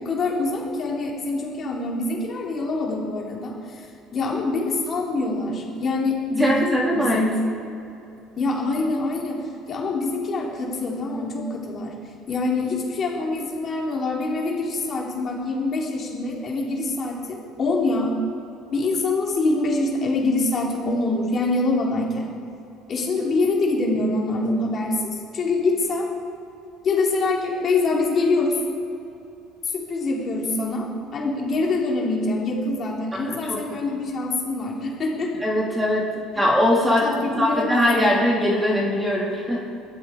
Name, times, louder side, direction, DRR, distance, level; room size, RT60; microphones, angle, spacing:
voice 1, 0.0-3.9 4.1-7.3 8.4-11.9 12.3-18.1 18.7-22.3 22.9-26.1 26.8-28.6 29.6-35.4 36.3-36.4 37.0-38.1, left 2 dB, 35° left, -3 dB, 4.4 m, -25 dB
voice 2, 6.4-7.3 33.3-33.6 35.4-36.1 36.3-39.6, left 1 dB, 10° right, -2 dB, 2.8 m, -21 dB
21.5 x 14.0 x 4.9 m, 2.7 s
cardioid pair, 130°, 0 cm